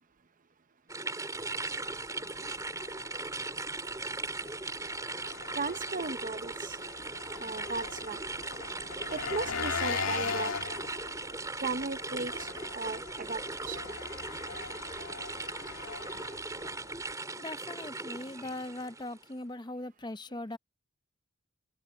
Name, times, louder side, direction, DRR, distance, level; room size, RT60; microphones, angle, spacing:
sound 1, 0.9-19.2, right 3 dB, 15° right, 4.5 m, -39 dB
Engine, 1.3-17.1, left 5 dB, 70° left, 1.9 m, -41 dB
voice 1, 5.6-6.8 7.4-8.2 9.1-10.5 11.6-12.5 12.7-13.4 13.7-13.8, right 3 dB, 40° right, 0.7 m, -36 dB
voice 2, 17.4-20.6, left 1 dB, 20° left, 0.6 m, -40 dB
open air
head